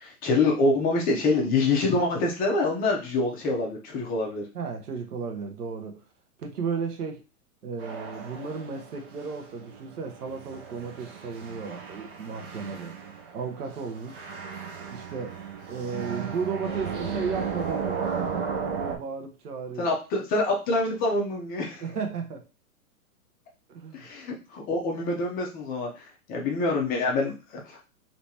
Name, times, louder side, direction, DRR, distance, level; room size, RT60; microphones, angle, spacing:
voice 1, 0.0-4.4 19.8-21.8 23.9-25.9 26.3-27.9, left 3 dB, 20° left, 0.7 m, -26 dB
voice 2, 4.5-6.0 6.4-7.2 7.6-13.0 13.3-14.3 14.9-15.4 15.7-19.9 21.8-22.4 23.7-24.1, right 5 dB, 80° right, 1.1 m, -34 dB
sound 1, 7.8-19.0, right 6 dB, 40° right, 0.8 m, -35 dB
3.3 x 3.0 x 2.8 m
hypercardioid pair, 135°, 45 cm